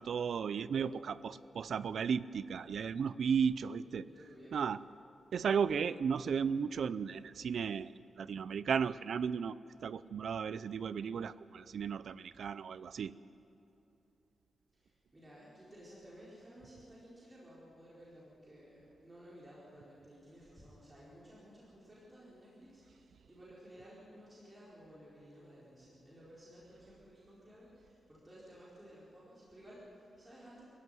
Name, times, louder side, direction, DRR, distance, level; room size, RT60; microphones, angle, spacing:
voice 1, 0.0-4.1 4.5-4.8 5.3-9.6 9.8-13.1, right 6 dB, 65° right, 16 dB, 0.5 m, -34 dB
voice 2, 0.7-1.3 4.0-4.6 14.7-30.6, equal, 20° right, -8 dB, 4.6 m, -56 dB
23.5 x 16.0 x 9.5 m, 2.9 s
wide cardioid pair, 155°, 0 cm